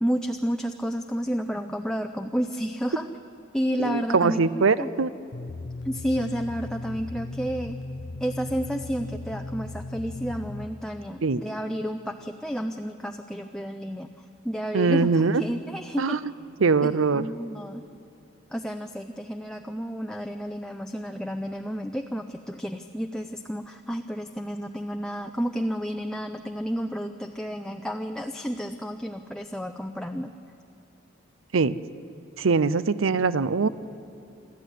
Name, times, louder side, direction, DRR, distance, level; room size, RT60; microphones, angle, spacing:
voice 1, 0.0-3.1 3.5-4.9 5.8-7.8 8.2-14.1 14.4-16.2 16.8-17.8 18.5-30.3, equal, 5° left, 5 dB, 0.5 m, -31 dB
voice 2, 3.8-5.1 11.2-11.4 14.7-15.4 16.0-16.2 16.6-17.3 31.5-31.8 32.4-33.7, right 4 dB, 80° right, 16 dB, 0.6 m, -22 dB
sound 1, 5.3-10.7, left 2 dB, 70° left, 0.8 m, -37 dB
27.0 x 12.5 x 9.3 m, 2.7 s
head